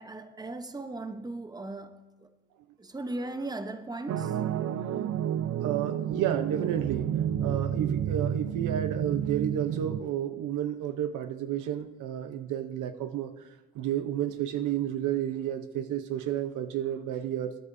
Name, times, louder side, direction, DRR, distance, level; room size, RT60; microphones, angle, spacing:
voice 1, 0.0-2.3 2.8-4.4, right 2 dB, 15° right, 0.9 m, -38 dB
sound 1, 4.1-10.0, right 9 dB, 60° right, 0.6 m, -30 dB
voice 2, 5.6-7.1 7.4-13.3 13.7-17.6, right 10 dB, 85° right, 0.9 m, -31 dB
20.5 x 10.0 x 2.7 m
cardioid pair, 90°, 30 cm